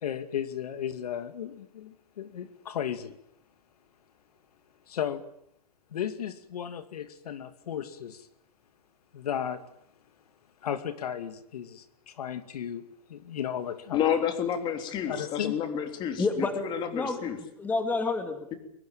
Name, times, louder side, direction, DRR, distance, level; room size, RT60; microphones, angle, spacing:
voice 1, 0.0-3.2 4.9-5.2 5.9-8.3 9.1-9.6 10.6-12.8 13.1-14.0 15.1-15.6, left 9 dB, 80° left, 11 dB, 2.5 m, -35 dB
voice 2, 13.9-17.4, left 8 dB, 25° left, 8 dB, 3.4 m, -30 dB
voice 3, 16.2-16.5 16.9-18.5, left 3 dB, 10° left, 8 dB, 2.1 m, -29 dB
22.5 x 22.0 x 9.2 m, 0.73 s
hypercardioid pair, 160°, 20 cm